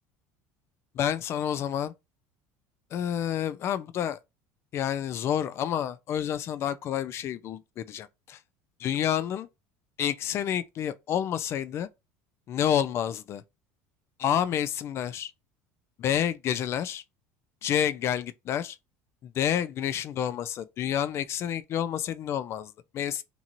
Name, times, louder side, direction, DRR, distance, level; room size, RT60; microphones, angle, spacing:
voice 1, 0.9-1.9 2.9-4.2 4.7-8.4 8.8-9.5 10.0-11.9 12.5-13.4 14.2-15.3 16.0-17.0 17.6-18.8 19.2-23.2, left 10 dB, 40° left, 0.3 m, -29 dB
2.9 x 2.6 x 2.5 m
cardioid pair, 130°, 7 cm